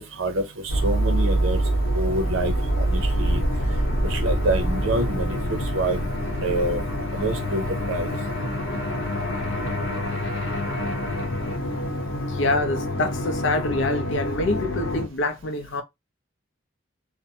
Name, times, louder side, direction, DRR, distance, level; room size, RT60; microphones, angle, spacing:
voice 1, 0.0-1.6 1.9-3.4 4.1-6.1 6.4-6.8 7.1-8.1, right 2 dB, 80° right, 0.7 m, -27 dB
sound 1, 0.7-15.0, equal, 85° left, 0.9 m, -26 dB
voice 2, 12.3-15.8, left 2 dB, 65° left, 0.6 m, -26 dB
2.6 x 2.1 x 2.7 m
head